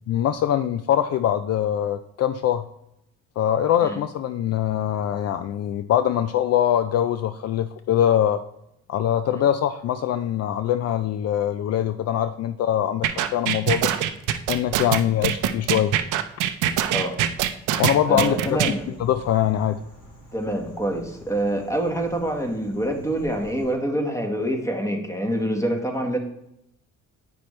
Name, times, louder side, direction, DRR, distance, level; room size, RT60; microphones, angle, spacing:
voice 1, 0.1-2.6 3.4-8.4 8.9-13.9 14.5-15.9 17.8-18.6 19.0-19.8, left 10 dB, 55° left, 10 dB, 0.4 m, -23 dB
sound 1, 13.0-18.7, right 11 dB, 85° right, 0.6 m, -23 dB
voice 2, 18.1-18.9 20.3-26.2, right 1 dB, 10° left, 3 dB, 1.4 m, -26 dB
sound 2, 18.3-23.7, equal, 80° left, 2.5 m, -47 dB
8.7 x 5.9 x 3.2 m, 0.78 s
cardioid pair, 90°, 30 cm